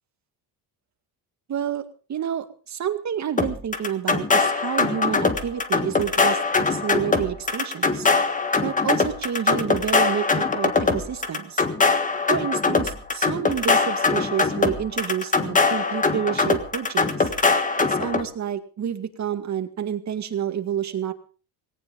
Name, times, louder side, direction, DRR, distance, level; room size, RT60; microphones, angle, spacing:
voice 1, 1.5-1.8 2.1-8.1 8.6-11.6 12.3-17.3 17.8-21.1, right 9 dB, 45° right, 8 dB, 2.0 m, -29 dB
sound 1, 3.4-18.2, left 4 dB, 20° left, 1.6 m, -22 dB
18.5 x 17.5 x 3.9 m, 0.37 s
cardioid pair, 145°, 40 cm